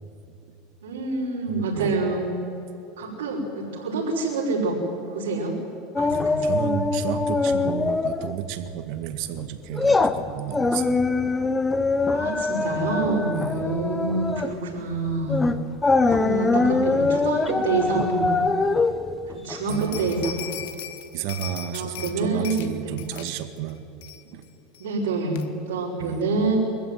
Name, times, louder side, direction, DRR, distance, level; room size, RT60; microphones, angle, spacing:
voice 1, 0.8-2.2 3.0-4.8 5.1-5.6 6.0-6.5 12.1-15.4 16.1-18.4 19.3-20.5 21.7-23.0 24.8-26.6, right 3 dB, 85° right, -6 dB, 6.0 m, -27 dB
voice 2, 1.5-2.0 6.1-11.0 13.3-13.6 19.7-20.4 21.1-23.8 24.2-24.5 26.0-26.2, right 10 dB, 60° right, 9 dB, 1.8 m, -32 dB
sound 1, 6.0-8.4 8.7-8.9 9.3-20.3 20.6-20.7, left 3 dB, 15° left, 1.0 m, -23 dB
sound 2, 19.7-22.1 22.4-22.7 23.0-23.3 23.7-23.8 24.0-24.4 24.7-24.8 25.4-25.5, left 12 dB, 75° left, 1.5 m, -38 dB
24.0 x 14.5 x 9.5 m, 2.9 s
supercardioid pair, 120°, 0 cm